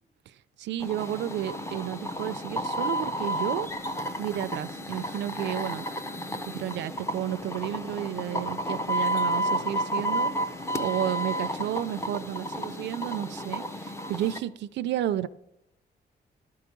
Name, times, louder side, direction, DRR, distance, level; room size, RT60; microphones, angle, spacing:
voice 1, 0.6-3.7 4.2-5.9 6.5-10.3 10.8-15.3, right 11 dB, 80° right, 0.4 m, -32 dB
sound 1, 0.8-14.4, equal, 15° left, 0.5 m, -31 dB
11.5 x 4.7 x 5.2 m
wide cardioid pair, 170°, 18 cm